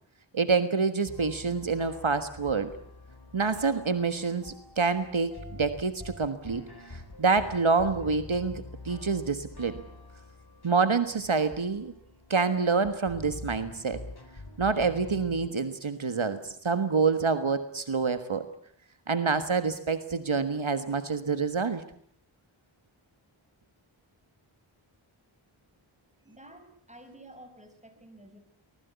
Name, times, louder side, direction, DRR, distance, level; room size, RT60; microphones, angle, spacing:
voice 1, 0.3-2.7 3.3-6.6 6.9-9.8 10.6-11.9 12.3-14.0 14.6-18.5 19.1-21.8, right 4 dB, 70° right, 10 dB, 1.6 m, -27 dB
sound 1, 1.0-15.5, left 2 dB, 50° left, 3.5 m, -46 dB
voice 2, 26.2-28.4, right 1 dB, 15° right, 7 dB, 5.4 m, -51 dB
24.5 x 20.0 x 8.2 m, 0.63 s
wide cardioid pair, 50°, 49 cm